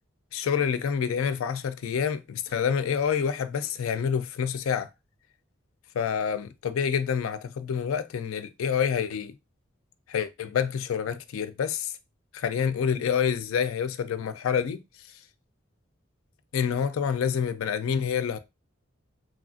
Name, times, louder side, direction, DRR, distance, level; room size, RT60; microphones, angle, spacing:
voice 1, 0.3-4.9 5.9-9.3 10.1-11.9 12.3-14.8 16.5-18.4, left 7 dB, 90° left, 0.4 m, -27 dB
3.0 x 2.4 x 2.4 m
head